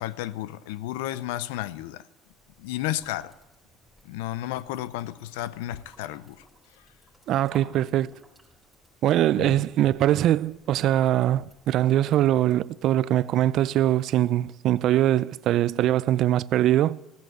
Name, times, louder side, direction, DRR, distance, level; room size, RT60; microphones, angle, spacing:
voice 1, 0.0-2.0 2.6-3.3 4.0-6.4 9.4-9.5, left 14 dB, 90° left, 0.6 m, -32 dB
sound 1, 2.3-12.6, right 1 dB, ahead, 5.2 m, -57 dB
voice 2, 7.3-8.1 9.0-17.0, right 13 dB, 60° right, 0.4 m, -22 dB
16.0 x 9.1 x 8.2 m
supercardioid pair, 90°, 0 cm